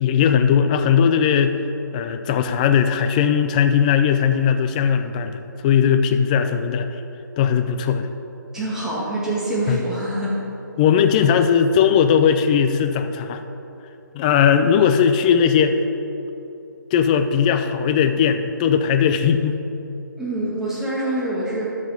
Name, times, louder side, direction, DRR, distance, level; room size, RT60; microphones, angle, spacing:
voice 1, 0.0-1.6 1.9-6.9 7.4-8.1 9.7-9.8 10.8-13.4 14.1-15.8 16.9-19.6, left 7 dB, 20° left, 8 dB, 0.5 m, -18 dB
voice 2, 8.5-10.4 20.2-21.7, right 1 dB, 5° right, -8 dB, 2.2 m, -25 dB
12.0 x 6.5 x 5.0 m, 2.9 s
figure-of-eight pair, 150°, 11 cm